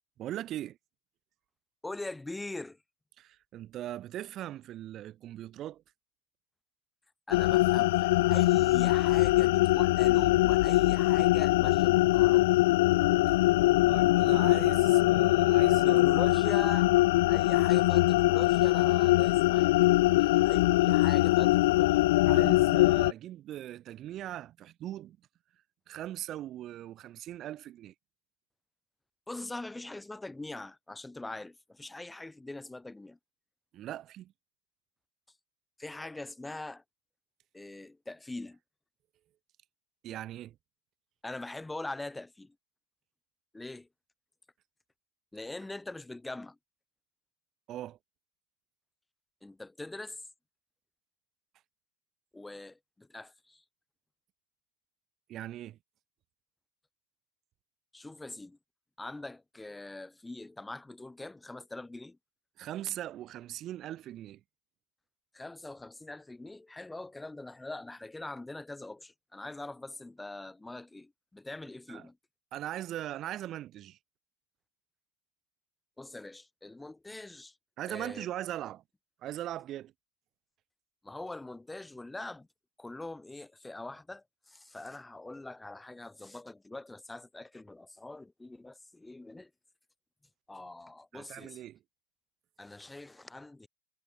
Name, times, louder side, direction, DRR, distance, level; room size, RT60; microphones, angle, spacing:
voice 1, 0.2-0.8 3.2-5.8 13.3-13.4 13.9-16.1 22.3-25.2 25.9-27.9 33.7-34.3 40.0-40.6 47.7-48.0 55.3-55.8 62.6-64.4 71.9-72.0 72.5-74.0 77.8-78.8 79.2-79.9 91.1-91.8, right 13 dB, 30° right, 2.4 m, -40 dB
voice 2, 1.8-2.8 7.3-12.5 15.8-19.7 20.1-22.2 29.3-33.2 35.8-36.8 37.5-38.6 41.2-42.6 43.5-43.9 45.3-46.6 49.4-50.3 52.3-53.6 57.9-58.6 59.0-62.2 65.3-72.2 76.0-77.6 77.9-78.3 81.0-82.5 82.8-89.5 90.5-91.6 92.6-93.7, left 2 dB, 5° left, 2.7 m, -43 dB
sound 1, 7.3-23.1, left 18 dB, 50° left, 0.7 m, -23 dB
figure-of-eight pair, 90°, 0 cm